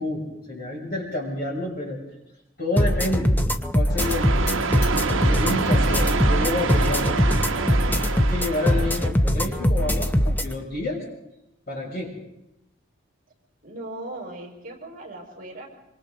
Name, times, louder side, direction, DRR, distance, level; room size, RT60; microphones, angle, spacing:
voice 1, 0.0-2.0 2.6-3.4 3.7-4.8 5.3-7.4 8.1-11.0 11.7-12.2, left 2 dB, 45° left, -2 dB, 6.8 m, -29 dB
sound 1, 2.8-10.5, equal, 10° left, 0.7 m, -22 dB
sound 2, 4.0-5.8 6.2-6.8 7.4-7.5 7.7-7.8 8.2-8.3 9.4-10.1, left 3 dB, 30° left, 2.3 m, -42 dB
sound 3, 4.0-9.1, right 4 dB, 70° right, 1.2 m, -26 dB
voice 2, 13.6-15.7, right 2 dB, 40° right, 1 dB, 5.2 m, -38 dB
26.0 x 25.5 x 3.9 m, 0.87 s
head